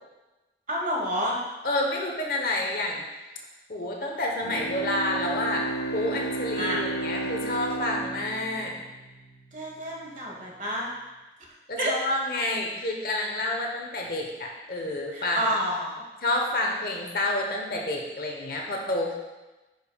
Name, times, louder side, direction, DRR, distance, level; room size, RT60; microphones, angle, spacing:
voice 1, 0.7-1.4 6.6-6.8 9.5-10.9 11.8-12.0 15.1-16.0, equal, 45° right, -2 dB, 1.4 m, -29 dB
voice 2, 1.6-3.1 3.7-8.7 11.7-15.5 16.2-19.1, left 1 dB, 55° left, 0 dB, 1.0 m, -29 dB
Bowed string instrument, 4.4-9.4, right 3 dB, 85° left, 0.7 m, -33 dB
9.4 x 5.4 x 2.3 m, 1.1 s
head